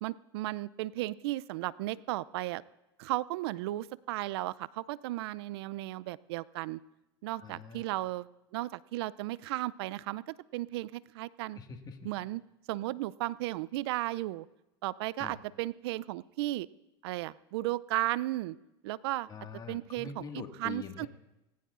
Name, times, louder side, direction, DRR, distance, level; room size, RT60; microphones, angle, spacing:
voice 1, 0.0-2.6 3.0-6.8 7.2-8.3 8.5-11.6 12.0-12.4 12.7-14.5 14.8-16.7 17.0-18.6 18.8-19.3 19.7-20.2 20.6-21.1, right 17 dB, 70° right, 21 dB, 0.4 m, -35 dB
voice 2, 7.4-7.9 11.5-12.1 15.2-15.4 19.3-21.1, left 5 dB, 30° left, 5 dB, 1.8 m, -44 dB
19.0 x 18.0 x 2.5 m, 0.96 s
hypercardioid pair, 100°, 14 cm